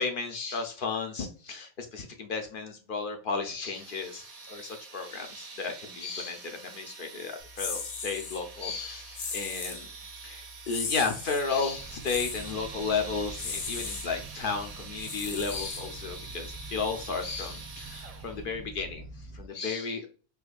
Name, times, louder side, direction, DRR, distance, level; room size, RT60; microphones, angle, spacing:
voice 1, 0.0-9.9 10.2-19.1 19.3-20.1, left 4 dB, 55° left, 5 dB, 0.6 m, -33 dB
sound 1, 3.7-18.5, right 4 dB, 50° right, 0.4 m, -45 dB
sound 2, 7.6-8.4 9.1-9.8 10.7-11.4 12.0-12.5 13.3-14.1 15.0-16.1, left 5 dB, 80° left, 1.1 m, -36 dB
sound 3, 11.7-19.5, right 2 dB, 85° right, 1.0 m, -46 dB
4.6 x 2.2 x 2.4 m, 0.38 s
omnidirectional pair, 1.4 m